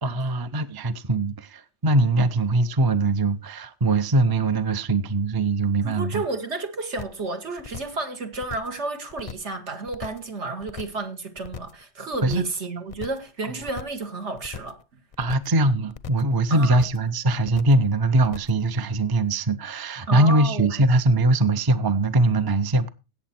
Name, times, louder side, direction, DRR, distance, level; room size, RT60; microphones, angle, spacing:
voice 1, 0.0-6.2 12.2-12.4 15.2-22.9, right 2 dB, 25° right, 0.5 m, -22 dB
voice 2, 5.8-14.8 16.5-16.8 20.1-20.8, right 3 dB, 65° right, 1.9 m, -31 dB
sound 1, 7.0-7.3 7.6-8.0 8.3-8.8 9.1-9.6 9.9-10.3 10.6-11.1 11.4-11.8 12.1-12.6 12.9-13.3 13.6-14.1 14.4-14.8 15.1-15.6 15.9-16.3 16.6-17.1 17.4-17.9 18.2-18.6, left 8 dB, 40° left, 0.5 m, -39 dB
16.5 x 7.3 x 4.3 m
omnidirectional pair, 1.3 m